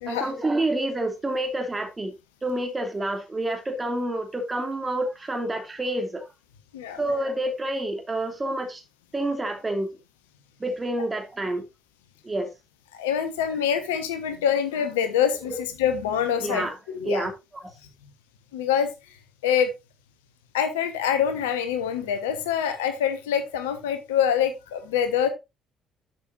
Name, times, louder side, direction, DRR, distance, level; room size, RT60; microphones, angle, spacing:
voice 1, 0.1-2.1 2.4-6.3 7.0-8.8 9.1-9.9 10.6-11.7 12.2-12.5 15.5-15.6 16.4-16.8 17.0-17.3, right 1 dB, 20° right, 4 dB, 2.9 m, -28 dB
voice 2, 12.9-15.5 15.8-17.3 18.5-18.9 19.4-19.7 20.5-25.3, left 8 dB, 75° left, 10 dB, 1.2 m, -25 dB
12.0 x 6.4 x 2.6 m, 0.24 s
figure-of-eight pair, 45°, 0 cm